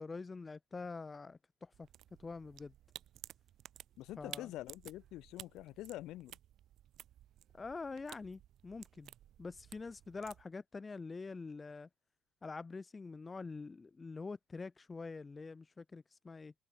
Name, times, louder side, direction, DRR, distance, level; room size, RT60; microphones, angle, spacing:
voice 1, 0.0-1.9 2.2-2.7 4.2-4.5 7.5-9.1 9.4-11.9 12.4-16.5, left 4 dB, 20° left, 0.3 m, -45 dB
sound 1, 1.7-10.4, right 12 dB, 55° right, 0.8 m, -55 dB
voice 2, 4.0-6.4, left 15 dB, 65° left, 0.9 m, -46 dB
cardioid pair, 130°, 0 cm